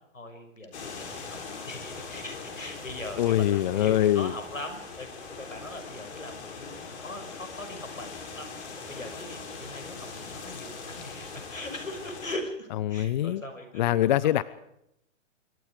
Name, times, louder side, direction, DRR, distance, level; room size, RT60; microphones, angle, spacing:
voice 1, 0.1-13.9 14.2-14.3, left 1 dB, 85° left, 6 dB, 6.3 m, -41 dB
sound 1, 0.7-12.4, left 4 dB, 60° left, 7.8 m, -41 dB
voice 2, 3.2-4.3 12.8-13.4 13.8-14.4, left 13 dB, 35° left, 18 dB, 0.8 m, -23 dB
26.5 x 23.5 x 5.0 m, 0.79 s
figure-of-eight pair, 120°, 38 cm